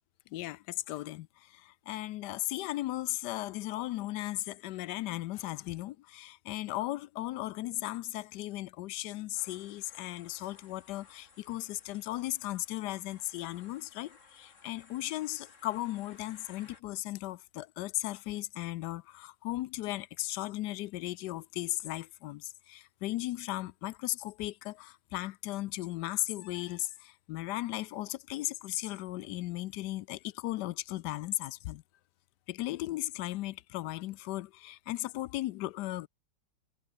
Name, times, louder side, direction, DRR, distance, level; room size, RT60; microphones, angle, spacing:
voice 1, 0.3-31.8 32.5-36.1, left 16 dB, 85° left, 1.2 m, -36 dB
sound 1, 9.3-16.8, left 4 dB, 45° left, 2.5 m, -59 dB
omnidirectional pair, 1.8 m